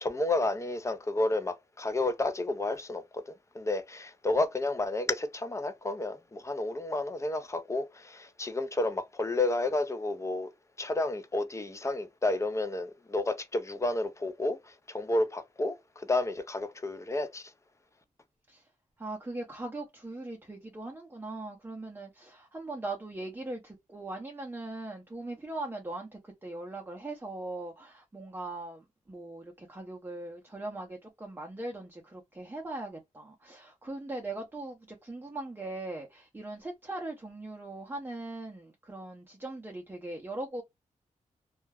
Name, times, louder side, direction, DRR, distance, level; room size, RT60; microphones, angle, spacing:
voice 1, 0.0-3.2 3.5-10.5 10.8-17.5, left 2 dB, 20° left, 0.5 m, -31 dB
voice 2, 19.0-40.6, right 2 dB, 15° right, 0.7 m, -40 dB
2.3 x 2.1 x 3.3 m
cardioid pair, 80°, 13 cm